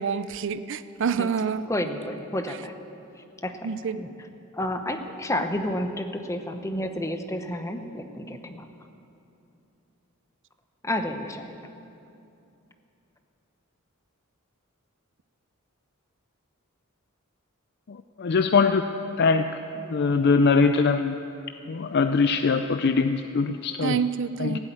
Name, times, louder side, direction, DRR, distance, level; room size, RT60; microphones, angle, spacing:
voice 1, 0.0-1.6 3.6-4.0 23.8-24.6, right 6 dB, 60° right, 14 dB, 0.5 m, -27 dB
voice 2, 1.7-2.7 3.4-3.7 4.0-4.1 4.5-8.7 10.8-11.6, left 1 dB, 15° left, 7 dB, 0.8 m, -30 dB
voice 3, 17.9-18.8 19.2-21.2 21.7-24.0 24.4-24.6, left 4 dB, 50° left, 8 dB, 0.4 m, -22 dB
15.5 x 8.3 x 9.1 m, 2.7 s
head